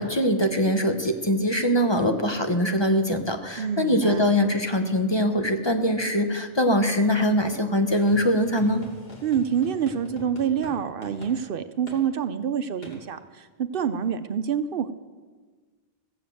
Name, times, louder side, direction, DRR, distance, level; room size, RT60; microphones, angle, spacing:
voice 1, 0.0-8.8, equal, 30° left, 5 dB, 0.9 m, -22 dB
voice 2, 3.6-4.2 9.2-14.9, right 8 dB, 65° right, 11 dB, 0.8 m, -27 dB
sound 1, 7.9-10.8 11.0-11.3 11.9-12.0 12.8-13.0, equal, 75° left, 2.6 m, -44 dB
15.5 x 7.3 x 7.6 m, 1.4 s
omnidirectional pair, 1.0 m